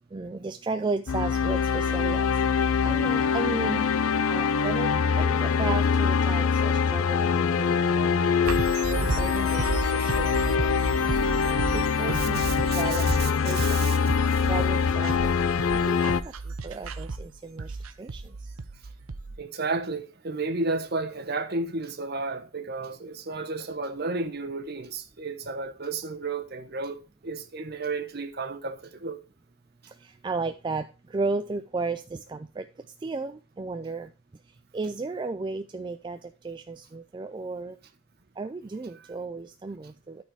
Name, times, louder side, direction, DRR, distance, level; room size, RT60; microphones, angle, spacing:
voice 1, 0.1-2.2 2.8-3.8 4.3-4.9 5.2-8.3 8.9-10.3 10.5-10.9 11.7-13.0 13.4-13.8 14.5-15.3 15.7-16.2 16.6-17.7 18.0-18.2 30.2-30.9 31.1-32.6 33.0-34.1 34.7-36.2 36.4-37.8 38.4-40.2, right 3 dB, 20° right, 0.3 m, -34 dB
sound 1, 1.1-16.2, left 6 dB, 85° left, 0.5 m, -24 dB
sound 2, 8.4-19.4, right 3 dB, 85° right, 0.8 m, -33 dB
voice 2, 12.2-14.0 14.3-14.5 19.4-29.2, right 3 dB, 50° right, 1.0 m, -33 dB
12.5 x 4.3 x 4.6 m
head